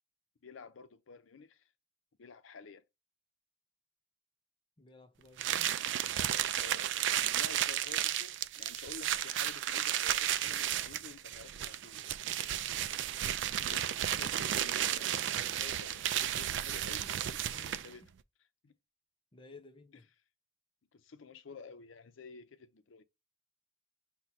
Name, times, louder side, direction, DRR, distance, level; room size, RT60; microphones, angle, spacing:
voice 1, 0.4-1.6 2.2-2.8 6.6-7.0 7.3-12.2 13.7-15.1 15.6-18.1 18.6-18.7 20.9-23.0, left 5 dB, 85° left, 0.6 m, -51 dB
voice 2, 4.8-6.5 12.4-13.1 17.5-17.8 19.3-20.1, left 3 dB, 25° left, 0.5 m, -57 dB
sound 1, 5.4-18.0, right 11 dB, 65° right, 0.3 m, -33 dB
6.0 x 2.2 x 4.0 m
head